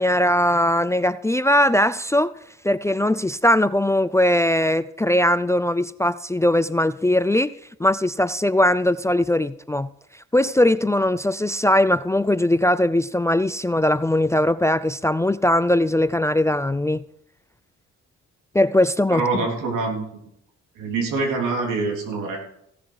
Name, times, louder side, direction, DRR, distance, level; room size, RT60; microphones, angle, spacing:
voice 1, 0.0-2.3 2.6-7.5 7.8-9.9 10.3-17.0 18.5-19.2, left 1 dB, 10° left, 0.4 m, -20 dB
voice 2, 19.1-20.1 20.8-22.4, right 3 dB, 85° right, 3.5 m, -25 dB
16.5 x 7.5 x 4.8 m
cardioid pair, 90°, 30 cm